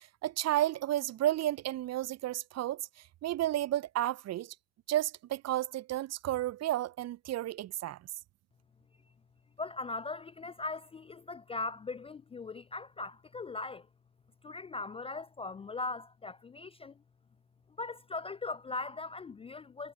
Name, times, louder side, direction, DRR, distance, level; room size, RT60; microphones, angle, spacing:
voice 1, 0.0-2.9 3.2-4.5 4.9-8.0, right 13 dB, 45° right, 0.8 m, -32 dB
voice 2, 9.6-13.9 14.4-17.0 17.8-19.9, left 3 dB, 15° left, 0.4 m, -39 dB
figure-of-eight pair, 55°, 38 cm